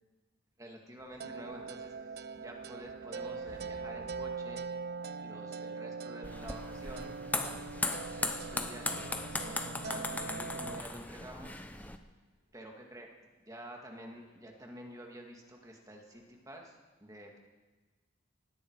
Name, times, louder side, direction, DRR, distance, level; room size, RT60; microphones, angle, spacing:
voice 1, 0.6-4.7 5.2-7.1 7.8-11.9 12.5-13.1 13.4-16.8 17.0-17.4, right 1 dB, 15° right, 1 dB, 2.1 m, -49 dB
sound 1, 1.0-16.5, equal, 75° right, 5.7 m, -64 dB
sound 2, 1.2-10.8, right 4 dB, 50° right, 0.4 m, -42 dB
sound 3, 6.2-12.0, left 2 dB, 10° left, 0.7 m, -37 dB
17.5 x 17.0 x 4.8 m, 1.3 s
head